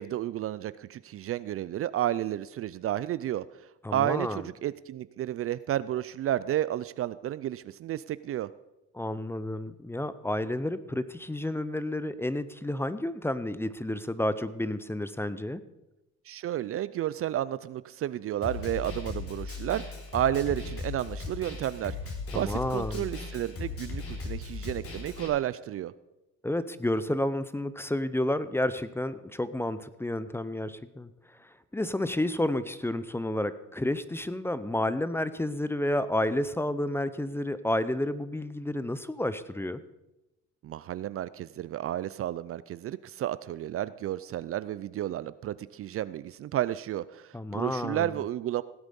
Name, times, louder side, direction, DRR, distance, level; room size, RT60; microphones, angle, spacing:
voice 1, 0.0-3.4 3.9-8.5 16.3-22.0 22.3-25.9 40.6-48.6, right 12 dB, 50° right, 17 dB, 0.4 m, -32 dB
voice 2, 3.8-4.5 8.9-15.6 22.3-23.1 26.4-31.1 31.4-39.8 47.3-48.1, left 1 dB, 10° left, 14 dB, 0.6 m, -30 dB
Snare drum, 18.4-25.3, left 3 dB, 45° left, 3.4 m, -37 dB
16.5 x 8.1 x 5.3 m, 0.96 s
cardioid pair, 110°, 30 cm